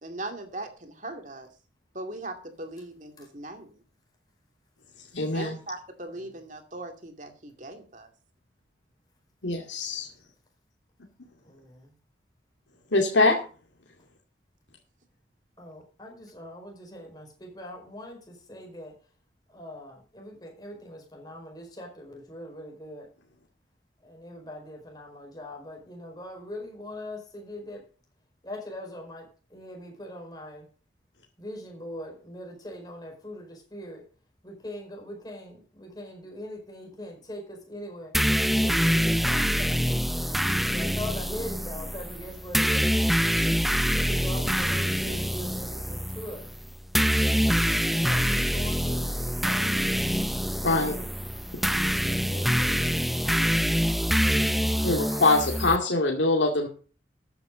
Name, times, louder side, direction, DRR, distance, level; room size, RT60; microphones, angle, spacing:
voice 1, 0.0-1.5 1.9-3.8 5.3-8.1, right 2 dB, 45° right, 6 dB, 2.4 m, -39 dB
voice 2, 5.1-5.6 9.4-10.0 12.9-13.4 50.6-50.9 51.5-51.6 54.8-56.7, left 2 dB, 90° left, 1 dB, 2.3 m, -23 dB
voice 3, 11.4-11.9 15.6-18.9 19.5-23.1 24.0-27.8 28.4-30.7 31.4-34.0 34.4-38.1 38.4-39.9 40.7-43.0 43.4-43.6 44.0-46.5 47.3-49.9 50.7-51.1 51.5-53.6, left 1 dB, 20° left, 1 dB, 4.8 m, -42 dB
sound 1, 38.1-55.8, equal, ahead, 0.4 m, -25 dB
14.0 x 9.8 x 3.9 m, 0.37 s
head